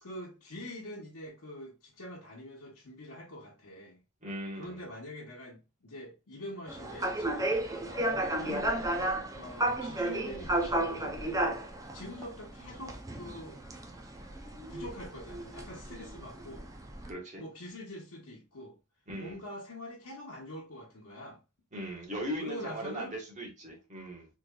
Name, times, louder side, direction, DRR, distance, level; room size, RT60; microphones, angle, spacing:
voice 1, 0.0-4.0 4.5-8.6 9.3-11.6 11.9-13.6 14.7-16.7 17.4-18.8 19.2-21.4 22.4-23.1, left 1 dB, 90° left, 1.1 m, -45 dB
voice 2, 4.2-4.8 8.4-8.7 17.1-17.4 19.1-19.3 21.7-24.3, equal, 35° right, 1.3 m, -39 dB
sound 1, 6.7-17.1, right 1 dB, 15° right, 0.5 m, -33 dB
4.0 x 3.1 x 2.3 m
head